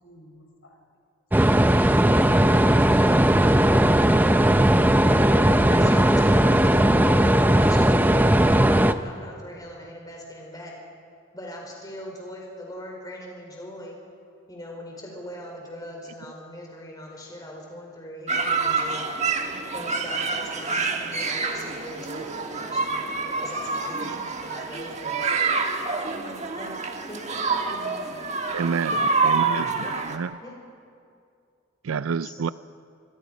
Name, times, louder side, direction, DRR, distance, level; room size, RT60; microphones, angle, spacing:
voice 1, 0.0-0.8 3.6-4.6 20.3-20.4 20.7-21.0 23.9-24.3 26.0-26.4 27.7-28.0, left 1 dB, 80° left, 2 dB, 4.3 m, -43 dB
sound 1, 1.3-8.9, right 1 dB, 10° right, 0.5 m, -18 dB
voice 2, 5.3-7.3 7.5-10.7 11.3-14.0 14.5-19.1 19.7-23.0 23.4-24.1 24.4-25.2 26.6-26.8 27.1-27.3 28.9-29.1 29.8-29.9 30.4-30.6 32.2-32.5, equal, 20° left, -1 dB, 4.3 m, -40 dB
sound 2, 18.3-30.2, right 4 dB, 35° right, 1.4 m, -27 dB
voice 3, 28.5-29.0 29.2-30.4 31.8-32.5, right 6 dB, 85° right, 16 dB, 0.4 m, -28 dB
26.5 x 23.5 x 5.3 m, 2.4 s
head